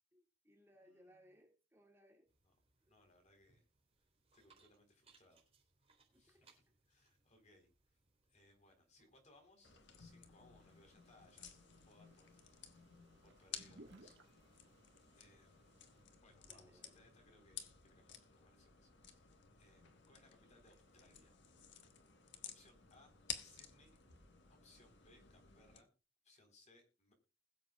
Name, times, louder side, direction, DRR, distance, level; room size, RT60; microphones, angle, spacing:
voice 1, 0.1-2.3 6.1-6.6 16.5-17.0, equal, 10° right, 1 dB, 2.2 m, -67 dB
voice 2, 0.8-1.3 2.4-2.5 2.9-3.6 4.3-5.4 6.2-6.5 6.9-7.7 8.3-12.3 13.2-14.2 14.5-14.7 15.2-15.8 16.2-21.3 22.4-24.0 24.6-25.9 26.2-27.1, left 2 dB, 35° left, 4 dB, 4.1 m, -68 dB
sound 1, 2.3-10.6, right 4 dB, 30° right, 3.8 m, -74 dB
sound 2, 9.6-25.8, left 8 dB, 60° left, 1.5 m, -55 dB
sound 3, 10.6-16.0, right 2 dB, 60° right, 1.7 m, -65 dB
21.0 x 7.6 x 2.4 m, 0.31 s
head